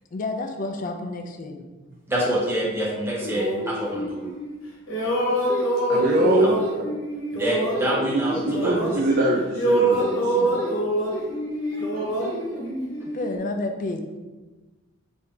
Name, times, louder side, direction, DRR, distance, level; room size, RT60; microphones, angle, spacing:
voice 1, 0.1-1.6 13.1-14.0, left 2 dB, 40° left, 4 dB, 0.4 m, -30 dB
voice 2, 2.1-4.2 7.4-8.7, equal, 10° right, -5 dB, 0.8 m, -26 dB
sound 1, 3.2-4.6 4.9-9.3 9.5-13.4, right 1 dB, 65° left, 1.0 m, -25 dB
voice 3, 5.9-6.6 8.0-10.6 11.7-12.7, right 2 dB, 45° right, -2 dB, 0.4 m, -24 dB
3.4 x 2.7 x 3.7 m, 1.2 s
head